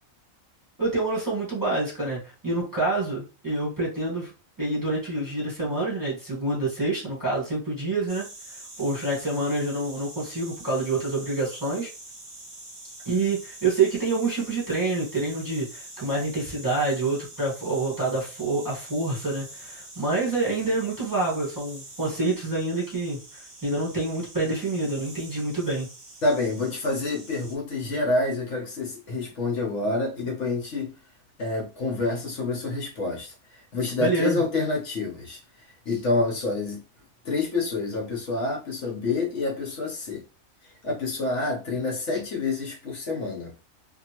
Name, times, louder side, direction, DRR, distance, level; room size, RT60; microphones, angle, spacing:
voice 1, 0.8-4.3 4.6-8.2 8.8-11.9 13.0-25.9 34.0-34.4, right 2 dB, 15° right, 1.3 m, -27 dB
sound 1, 8.1-27.6, right 2 dB, 45° right, 1.0 m, -45 dB
voice 2, 26.2-31.0 31.4-35.4 35.7-36.8 37.2-40.2 40.6-43.5, left 3 dB, 65° left, 1.1 m, -28 dB
2.7 x 2.5 x 2.8 m
omnidirectional pair, 1.4 m